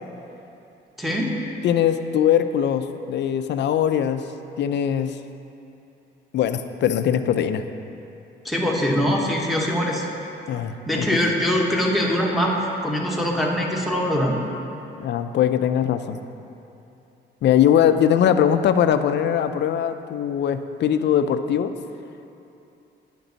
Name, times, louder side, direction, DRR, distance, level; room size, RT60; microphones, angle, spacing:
voice 1, 1.0-1.4 8.4-10.1 10.8-12.6 12.8-14.3, equal, ahead, -3 dB, 1.2 m, -22 dB
voice 2, 1.6-4.2 4.6-5.2 6.3-7.6 8.6-8.7 10.5-11.1 15.0-16.2 17.4-21.7, left 9 dB, 60° left, 10 dB, 0.4 m, -21 dB
10.0 x 5.2 x 4.0 m, 2.8 s
cardioid pair, 90°, 20 cm